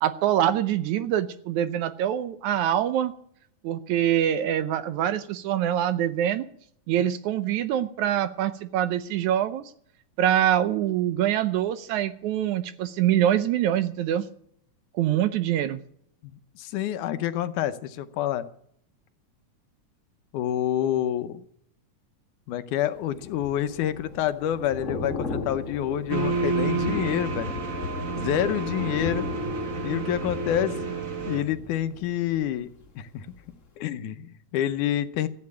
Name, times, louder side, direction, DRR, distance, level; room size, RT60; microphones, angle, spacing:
voice 1, 0.0-3.1 3.6-6.4 6.9-9.6 10.2-14.2 14.9-15.8, right 11 dB, 75° right, 13 dB, 1.9 m, -24 dB
voice 2, 16.2-18.4 20.3-21.4 22.5-27.5 28.2-29.3 29.8-30.9 31.3-32.7 33.0-33.3 33.8-35.3, left 11 dB, 75° left, 11 dB, 2.2 m, -28 dB
Thunder / Rain, 23.0-32.9 33.2-33.5, left 4 dB, 35° left, 1.3 m, -37 dB
sound 1, 26.1-31.4, right 3 dB, 40° right, 1.2 m, -29 dB
14.5 x 8.7 x 8.4 m, 0.65 s
omnidirectional pair, 3.8 m